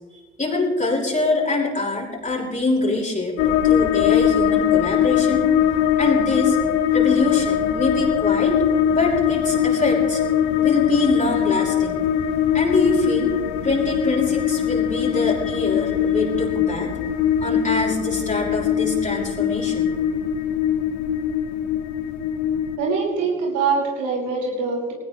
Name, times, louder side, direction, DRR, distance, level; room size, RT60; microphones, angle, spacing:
voice 1, 0.1-5.5 6.0-6.6 6.9-10.2 10.6-12.0 12.5-13.3 13.6-16.9 17.4-19.9, left 2 dB, 25° left, -4 dB, 6.3 m, -24 dB
sound 1, 3.4-22.8, left 9 dB, 70° left, 1.3 m, -21 dB
voice 2, 22.8-24.9, right 4 dB, 75° right, -2 dB, 5.5 m, -23 dB
19.5 x 18.0 x 3.3 m, 1.4 s
hypercardioid pair, 60°, 30 cm